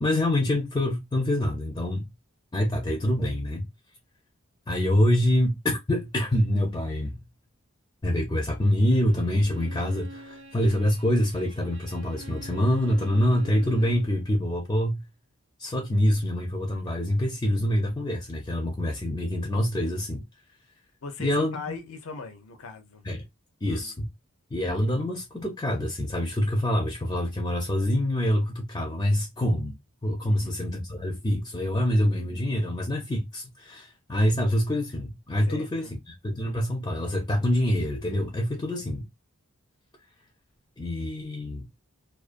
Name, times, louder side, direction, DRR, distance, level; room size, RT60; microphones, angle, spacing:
voice 1, 0.0-2.1 2.5-3.7 4.7-7.2 8.0-15.0 15.6-20.2 21.2-21.6 23.0-23.3 23.6-24.1 24.5-29.8 30.0-39.1 40.8-41.7, left 1 dB, 20° left, 0.4 m, -26 dB
Bowed string instrument, 8.8-14.2, right 2 dB, 70° right, 0.6 m, -46 dB
voice 2, 21.0-23.0 23.7-23.9 30.2-30.5 35.4-35.9, left 3 dB, 70° left, 0.5 m, -39 dB
2.4 x 2.2 x 2.4 m
head